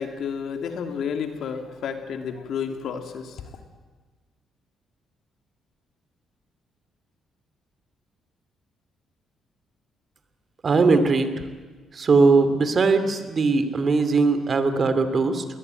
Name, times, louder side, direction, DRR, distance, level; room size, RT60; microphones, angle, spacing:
voice 1, 0.0-3.4, left 7 dB, 70° left, 6 dB, 2.8 m, -31 dB
voice 2, 10.6-11.3 11.9-15.4, right 4 dB, 45° right, 10 dB, 2.7 m, -20 dB
21.5 x 19.5 x 9.3 m, 1.4 s
cardioid pair, 90°, 0 cm